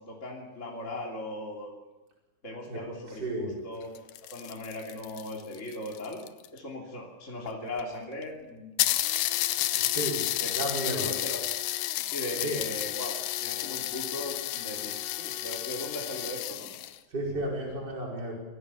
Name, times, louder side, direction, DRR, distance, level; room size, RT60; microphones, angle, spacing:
voice 1, 0.0-1.7 2.4-3.9 4.2-6.2 6.5-8.7 10.4-10.5 11.0-11.6 12.1-13.1 13.4-16.7, left 1 dB, 20° left, -2 dB, 2.8 m, -38 dB
voice 2, 3.2-3.5 9.8-10.2 10.6-11.1 12.4-12.6 17.1-18.3, right 1 dB, 25° right, -2 dB, 5.7 m, -32 dB
sound 1, 3.8-6.6 7.5-7.6 7.8-7.9 8.2-8.3 8.8-17.0, left 14 dB, 75° left, 2.3 m, -31 dB
26.0 x 16.5 x 7.1 m, 1.1 s
omnidirectional pair, 4.2 m